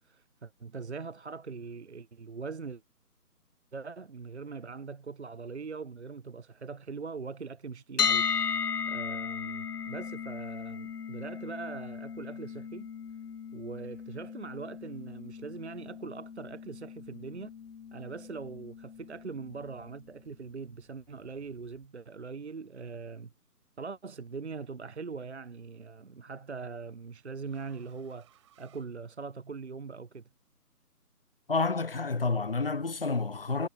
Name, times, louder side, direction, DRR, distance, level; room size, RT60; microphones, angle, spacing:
voice 1, 0.0-2.8 3.7-8.3 8.9-12.9 13.5-17.5 17.9-23.3 23.8-30.2, right 4 dB, 45° right, 0.8 m, -41 dB
sound 1, 8.0-19.9, left 7 dB, 85° left, 0.7 m, -36 dB
sound 2, 24.0-24.3 25.7-29.7, right 12 dB, 20° right, 4.1 m, -67 dB
voice 2, 31.5-33.7, left 4 dB, 40° left, 0.6 m, -29 dB
figure-of-eight pair, 155°, 46 cm